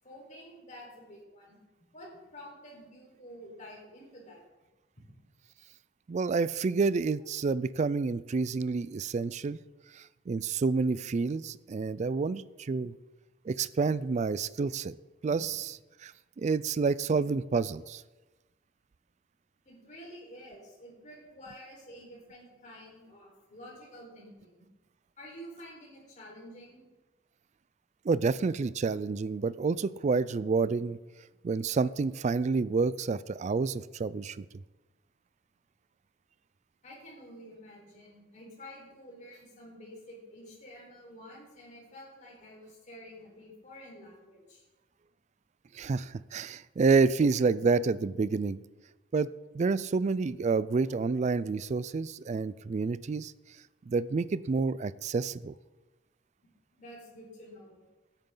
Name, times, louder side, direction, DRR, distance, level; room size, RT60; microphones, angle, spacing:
voice 1, 0.0-4.4 4.9-5.0 19.6-24.7 25.2-26.9 36.8-44.6 56.7-57.8, equal, 40° left, -3 dB, 4.2 m, -49 dB
voice 2, 6.1-9.6 9.9-12.9 13.5-14.9 15.2-15.6 16.0-16.1 16.4-18.0 28.0-31.0 31.4-34.5 45.7-48.6 49.1-49.3 49.5-53.3 53.9-55.5, right 4 dB, 40° right, 18 dB, 0.3 m, -28 dB
14.5 x 9.0 x 3.8 m, 1.1 s
head